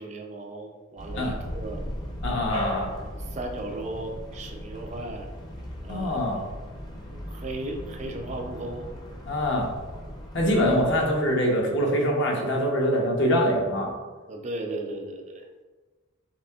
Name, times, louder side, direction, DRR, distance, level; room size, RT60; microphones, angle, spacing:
voice 1, 0.0-1.8 2.8-5.3 5.8-6.5 7.1-8.9 14.3-15.5, right 2 dB, 30° right, 2 dB, 0.4 m, -36 dB
sound 1, 1.0-11.1, equal, 20° left, 0.6 m, -37 dB
voice 2, 2.2-2.9 5.9-6.4 9.3-9.7 10.3-13.9, equal, 55° left, 0 dB, 0.9 m, -24 dB
5.9 x 3.5 x 2.4 m, 1.3 s
head